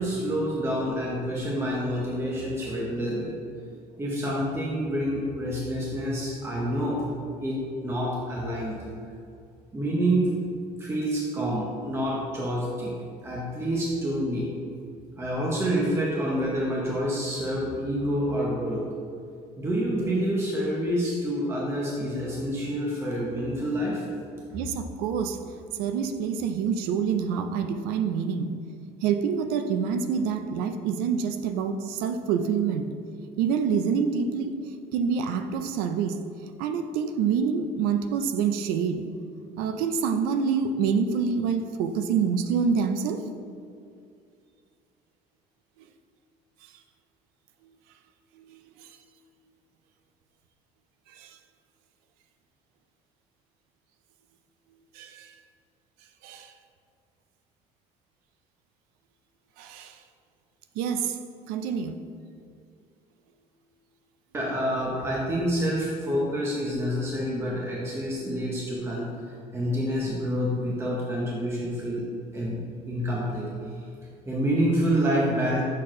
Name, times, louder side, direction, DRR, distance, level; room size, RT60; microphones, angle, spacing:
voice 1, 0.0-3.3 4.0-7.0 7.4-8.8 9.7-10.3 10.8-12.9 13.2-14.5 15.2-18.8 19.6-24.1 64.3-69.1 69.5-72.0 72.3-72.6 72.8-73.5 74.3-75.6, equal, 15° right, -4 dB, 0.9 m, -27 dB
voice 2, 24.5-25.4 25.8-28.5 29.0-32.8 33.4-34.5 34.9-36.2 36.6-39.0 39.6-43.2 48.4-48.9 51.1-51.4 54.9-55.3 56.2-56.5 59.6-60.0 60.8-61.2 61.5-62.0, right 6 dB, 90° right, 8 dB, 0.5 m, -27 dB
6.3 x 4.2 x 3.7 m, 2.4 s
cardioid pair, 125°, 15 cm